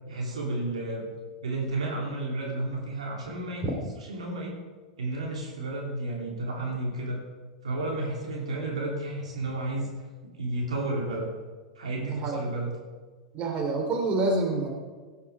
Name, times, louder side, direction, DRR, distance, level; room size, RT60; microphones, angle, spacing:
voice 1, 0.1-1.0 1.4-3.6 4.1-4.5 5.0-7.2 7.6-9.9 10.2-11.3 11.8-12.7, right 2 dB, 75° right, -2 dB, 2.8 m, -32 dB
voice 2, 12.1-12.4 13.3-14.7, right 2 dB, 40° right, 2 dB, 3.1 m, -27 dB
17.0 x 8.8 x 4.8 m, 1.4 s
figure-of-eight pair, 90°, 3 cm